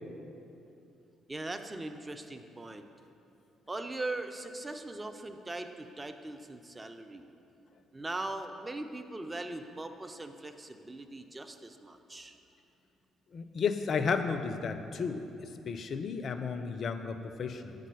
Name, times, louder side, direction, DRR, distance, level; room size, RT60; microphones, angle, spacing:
voice 1, 1.3-2.9 3.7-7.3 7.9-12.3, right 2 dB, 20° right, 7 dB, 0.4 m, -40 dB
voice 2, 13.3-15.2 15.7-17.7, left 5 dB, 45° left, 9 dB, 0.4 m, -33 dB
7.3 x 3.8 x 5.2 m, 2.7 s
figure-of-eight pair, 45°, 0 cm